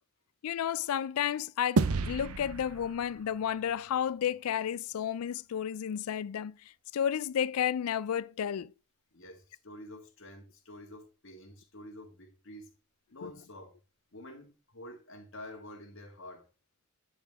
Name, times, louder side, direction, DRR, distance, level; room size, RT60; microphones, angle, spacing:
voice 1, 0.4-6.5 6.9-8.7 13.2-13.3, left 9 dB, 85° left, 0.4 m, -32 dB
sound 1, 1.8-4.4, right 4 dB, 85° right, 0.6 m, -32 dB
voice 2, 9.1-12.7 13.1-13.8 14.1-16.5, left 1 dB, 60° left, 1.9 m, -48 dB
10.0 x 4.1 x 3.5 m
head